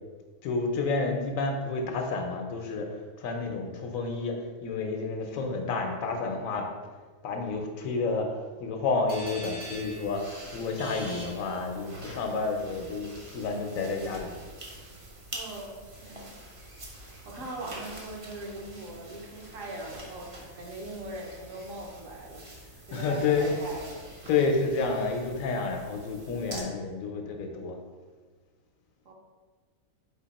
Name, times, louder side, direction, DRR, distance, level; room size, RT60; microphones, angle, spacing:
voice 1, 0.4-2.9 3.2-6.7 7.2-8.3 8.6-14.3 17.4-17.5 22.9-23.6 24.3-27.8, left 4 dB, 75° left, 3 dB, 1.0 m, -30 dB
sound 1, 9.1-12.1, equal, 80° right, 1.9 m, -44 dB
sound 2, 9.6-26.6, right 1 dB, 35° right, 0.5 m, -46 dB
voice 2, 15.3-16.4 17.0-22.5 22.9-24.1 29.0-29.1, right 1 dB, 65° right, -2 dB, 1.2 m, -40 dB
4.3 x 2.8 x 4.0 m, 1.4 s
omnidirectional pair, 1.5 m